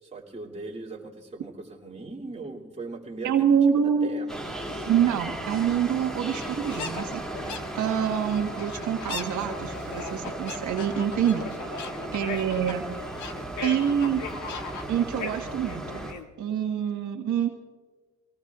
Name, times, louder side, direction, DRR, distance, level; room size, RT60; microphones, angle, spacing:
voice 1, 0.0-4.5 11.8-12.1, right 3 dB, 20° right, -1 dB, 2.9 m, -40 dB
voice 2, 3.2-4.1 4.9-11.8 12.1-12.9 13.6-14.2 14.9-16.1 16.4-17.5, right 8 dB, 70° right, 2 dB, 1.5 m, -26 dB
sound 1, 4.3-16.1, right 1 dB, ahead, 2.7 m, -36 dB
sound 2, 4.7-5.0 5.7-5.8 6.0-6.1 6.4-16.3, left 5 dB, 75° left, 1.6 m, -39 dB
26.5 x 18.5 x 2.5 m, 1.4 s
cardioid pair, 90°, 30 cm